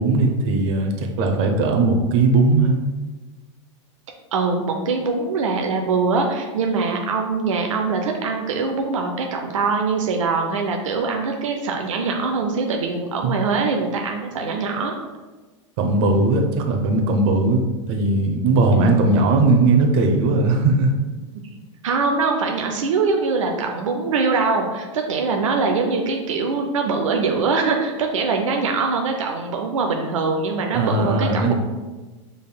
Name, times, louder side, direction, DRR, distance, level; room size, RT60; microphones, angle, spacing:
voice 1, 0.0-2.8 13.2-13.3 15.8-17.6 17.9-20.9 30.7-31.5, right 3 dB, 55° right, 2 dB, 0.8 m, -18 dB
voice 2, 4.3-14.9 18.7-19.1 21.8-31.5, right 4 dB, 90° right, 2 dB, 0.5 m, -23 dB
5.3 x 3.5 x 2.3 m, 1.2 s
hypercardioid pair, 115°, 16 cm